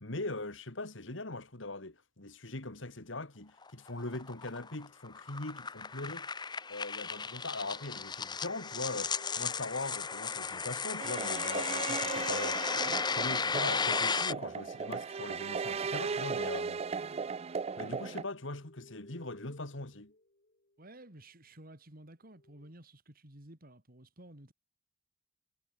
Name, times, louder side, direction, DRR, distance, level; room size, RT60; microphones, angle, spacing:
voice 1, 0.0-6.3 6.7-16.8 17.8-20.1, left 2 dB, 70° left, 2.7 m, -41 dB
sound 1, 3.6-14.3, left 5 dB, 20° left, 0.9 m, -35 dB
sound 2, 8.4-11.2 13.2-20.9 22.3-22.7, left 1 dB, 50° left, 5.7 m, -60 dB
sound 3, 11.0-18.2, right 5 dB, 30° right, 0.4 m, -37 dB
voice 2, 17.0-17.3 20.8-24.5, right 1 dB, 50° right, 3.8 m, -53 dB
head